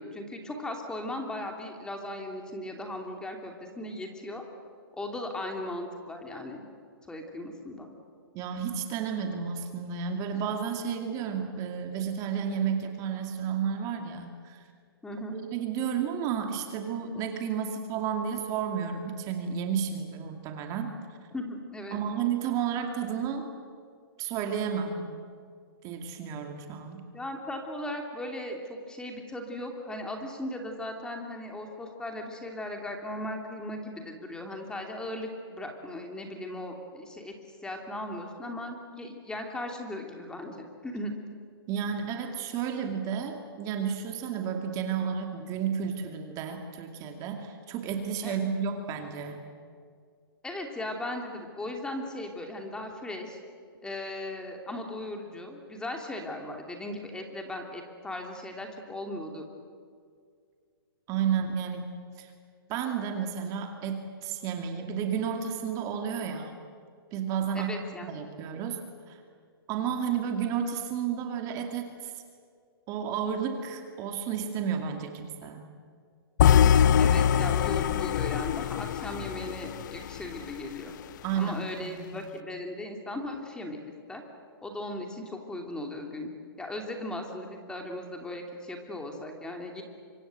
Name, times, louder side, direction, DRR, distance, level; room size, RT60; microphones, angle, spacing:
voice 1, 0.0-4.4 4.9-6.6 7.1-7.9 15.0-15.4 21.3-22.0 27.1-37.3 37.6-41.1 48.2-48.5 50.4-53.4 53.8-59.5 67.5-68.1 77.0-80.9 81.3-83.8 84.1-84.2 84.6-86.3 86.6-89.8, left 1 dB, 5° left, 2 dB, 2.9 m, -37 dB
voice 2, 8.3-14.6 15.3-20.9 21.9-23.5 24.2-25.2 25.8-27.0 41.7-49.4 61.1-61.9 62.2-62.3 62.7-66.5 67.1-67.8 68.1-68.8 69.1-69.2 69.7-72.1 72.9-75.7 81.2-82.0, right 7 dB, 25° right, 4 dB, 2.5 m, -32 dB
sound 1, 76.4-80.5, left 9 dB, 50° left, 0.7 m, -23 dB
25.5 x 25.0 x 7.8 m, 2.1 s
hypercardioid pair, 145°, 13 cm